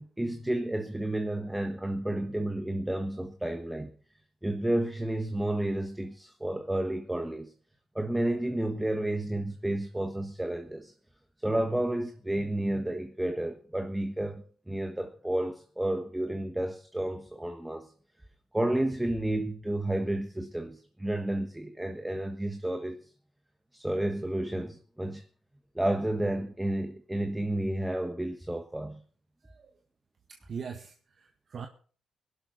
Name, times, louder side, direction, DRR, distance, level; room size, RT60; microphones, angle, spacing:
voice 1, 0.0-3.9 4.4-7.5 7.9-10.9 11.4-17.9 18.5-23.1 23.7-25.2 25.7-29.0, right 1 dB, 5° right, 1.4 m, -31 dB
voice 2, 29.4-29.8 30.3-31.7, right 6 dB, 45° right, 1.7 m, -42 dB
21.5 x 12.0 x 4.1 m
cardioid pair, 130°, 0 cm